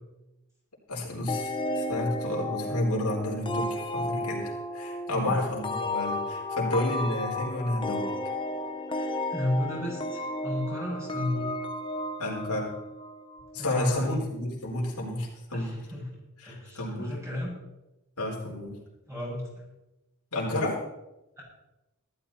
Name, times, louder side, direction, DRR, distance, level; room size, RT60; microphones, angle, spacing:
voice 1, 0.9-8.1 12.2-12.8 13.5-15.7 16.4-17.1 18.2-18.8 20.3-20.8, left 1 dB, 85° left, -3 dB, 4.6 m, -31 dB
sound 1, 1.3-13.7, left 1 dB, 20° left, 0.8 m, -33 dB
voice 2, 5.1-5.4 8.9-11.5 13.6-14.2 15.5-16.1 16.4-17.6 19.1-19.5, left 1 dB, 15° right, -5 dB, 6.7 m, -32 dB
15.5 x 13.0 x 4.4 m, 0.99 s
head